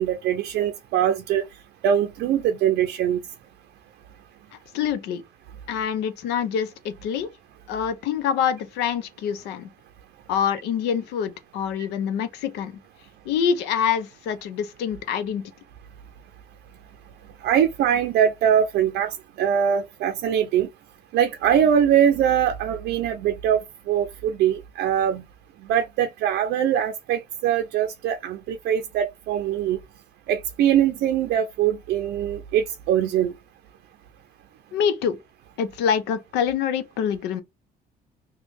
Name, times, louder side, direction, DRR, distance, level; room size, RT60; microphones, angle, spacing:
voice 1, 0.0-1.4 1.8-3.2 17.4-20.7 21.1-23.6 23.9-25.2 25.7-29.8 30.3-33.3, right 9 dB, 75° right, 0.5 m, -22 dB
voice 2, 4.7-5.2 5.7-7.3 7.7-9.7 10.3-12.7 13.3-15.4 34.7-35.2 35.6-37.4, left 8 dB, 90° left, 0.6 m, -25 dB
3.0 x 2.2 x 3.3 m
cardioid pair, 110°, 17 cm